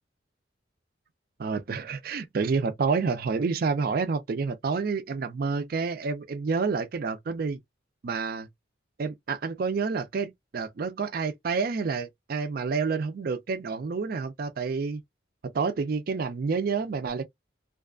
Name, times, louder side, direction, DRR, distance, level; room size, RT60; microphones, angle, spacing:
voice 1, 1.4-7.6 8.0-8.5 9.0-15.0 15.4-17.2, right 4 dB, 50° right, 0.4 m, -29 dB
2.5 x 2.3 x 2.3 m
head